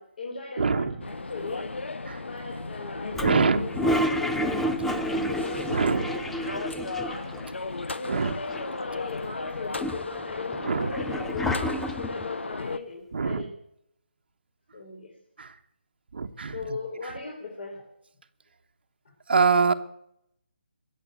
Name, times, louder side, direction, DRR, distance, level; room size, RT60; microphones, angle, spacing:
voice 1, 0.0-1.6 2.2-4.6 5.3-13.5 14.7-15.1 16.5-17.8, left 4 dB, 55° left, -1 dB, 4.3 m, -37 dB
voice 2, 0.6-1.0 2.1-2.2 3.2-3.6 5.7-6.1 8.1-8.3 10.6-10.9 13.1-13.5 15.4-15.5 16.1-16.8 19.3-19.7, right 5 dB, 60° right, 6 dB, 1.0 m, -24 dB
sound 1, 1.0-12.8, left 3 dB, 90° left, 1.0 m, -36 dB
Toilet flush, 3.1-7.5 7.8-7.9 8.1-8.9 9.4-12.3, equal, 5° left, 0.5 m, -30 dB
21.5 x 7.8 x 8.1 m, 0.76 s
hypercardioid pair, 165°, 6 cm